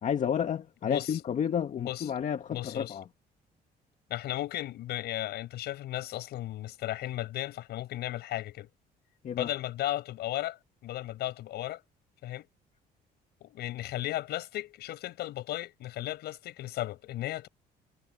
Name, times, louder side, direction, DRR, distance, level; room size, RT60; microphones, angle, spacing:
voice 1, 0.0-3.0 9.2-9.5, left 8 dB, 45° left, 1.9 m, -31 dB
voice 2, 0.8-1.2 1.8-2.1 2.5-2.9 4.1-8.7 9.3-11.8 12.2-12.5 13.4-17.5, left 14 dB, 75° left, 7.0 m, -35 dB
cardioid pair, 110°, 17 cm